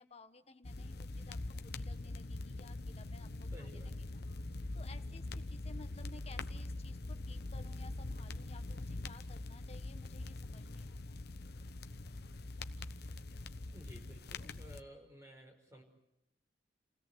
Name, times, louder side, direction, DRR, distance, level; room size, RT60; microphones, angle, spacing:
voice 1, 0.0-3.9 4.7-11.2, left 3 dB, 35° left, 8 dB, 1.5 m, -57 dB
sound 1, 0.6-14.8, left 2 dB, 60° left, 1.0 m, -43 dB
voice 2, 3.5-3.9 13.7-15.8, equal, 15° right, 3 dB, 5.3 m, -54 dB
30.0 x 17.0 x 8.1 m, 0.88 s
head